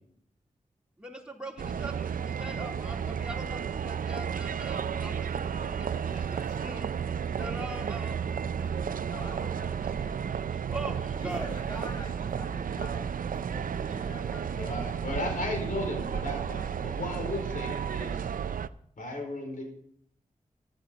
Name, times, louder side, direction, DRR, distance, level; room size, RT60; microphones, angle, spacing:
voice 1, 1.0-6.2 6.6-6.8 7.3-9.1 10.3-11.5, right 1 dB, 5° right, -1 dB, 3.2 m, -42 dB
sound 1, 1.6-18.7, right 7 dB, 90° right, 0.4 m, -33 dB
voice 2, 6.0-7.5 7.8-7.9 8.6-10.3 11.2-14.6 15.2-15.8, left 1 dB, 30° left, -2 dB, 5.8 m, -47 dB
voice 3, 14.6-18.3 19.0-19.6, left 1 dB, 80° left, 2 dB, 4.6 m, -35 dB
14.5 x 10.5 x 4.0 m, 0.68 s
wide cardioid pair, 65°, 14 cm